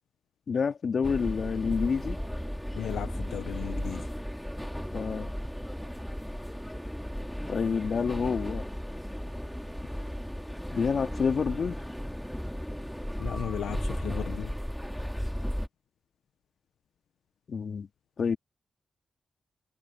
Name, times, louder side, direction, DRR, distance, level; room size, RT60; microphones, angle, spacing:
voice 1, 0.5-2.2 4.9-5.3 7.5-8.7 10.7-11.8 17.5-17.9 18.2-18.4, left 5 dB, 60° left, 2.5 m, -28 dB
sound 1, 1.0-15.7, equal, 5° left, 2.6 m, -35 dB
voice 2, 2.7-4.1 13.2-14.5, left 10 dB, 90° left, 1.1 m, -35 dB
cardioid pair, 60°, 0 cm